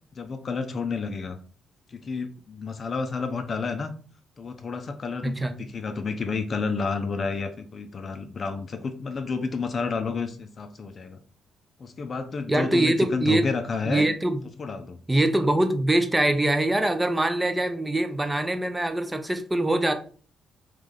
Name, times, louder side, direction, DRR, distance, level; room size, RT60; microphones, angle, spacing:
voice 1, 0.2-1.4 1.9-3.9 4.4-11.2 11.8-14.1 14.6-15.0, left 4 dB, 40° left, 7 dB, 0.5 m, -30 dB
voice 2, 5.2-5.5 12.5-13.5 13.8-14.4 15.1-19.9, right 1 dB, 10° right, 7 dB, 0.6 m, -23 dB
3.3 x 3.1 x 3.8 m, 0.41 s
cardioid pair, 100°, 0 cm